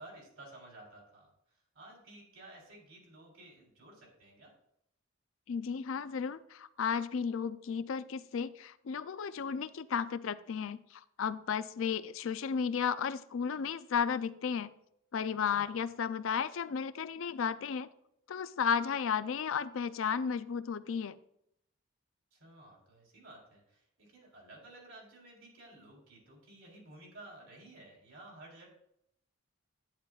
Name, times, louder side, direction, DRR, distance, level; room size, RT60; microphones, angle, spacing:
voice 1, 0.0-4.5 15.5-15.8 22.3-28.7, right 2 dB, 70° right, -1 dB, 3.6 m, -54 dB
voice 2, 5.5-14.7 15.1-17.9 18.3-21.1, left 6 dB, 70° left, 15 dB, 0.4 m, -34 dB
10.5 x 9.3 x 2.4 m, 0.76 s
head